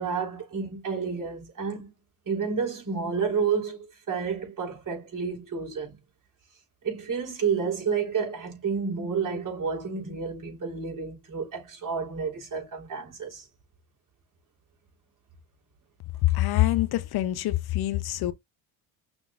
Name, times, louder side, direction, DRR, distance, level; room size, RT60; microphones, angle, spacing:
voice 1, 0.0-1.9 2.3-6.0 6.8-13.5, right 5 dB, 40° right, 3.9 m, -30 dB
voice 2, 16.3-18.3, left 15 dB, 55° left, 0.7 m, -25 dB
5.9 x 3.6 x 2.4 m
supercardioid pair, 85°, 47 cm